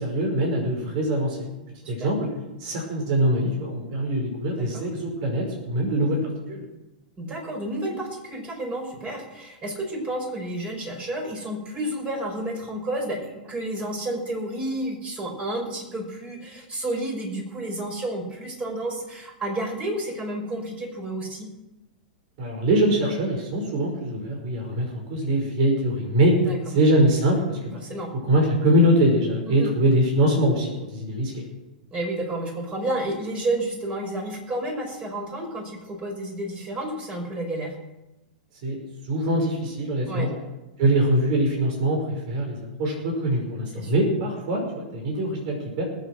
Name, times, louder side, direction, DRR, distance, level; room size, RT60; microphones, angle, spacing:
voice 1, 0.0-1.5 1.9-2.3 2.6-6.6 22.4-26.4 26.7-27.8 28.3-31.4 38.6-38.8 39.1-40.3 40.8-45.8, right 1 dB, 55° right, 0 dB, 5.5 m, -23 dB
voice 2, 7.2-21.5 26.4-26.6 27.8-28.1 29.4-29.7 31.9-37.7 40.1-40.3 43.7-43.9, right 1 dB, 25° right, 1 dB, 5.5 m, -31 dB
19.5 x 8.3 x 6.3 m, 1.0 s
hypercardioid pair, 110°, 5 cm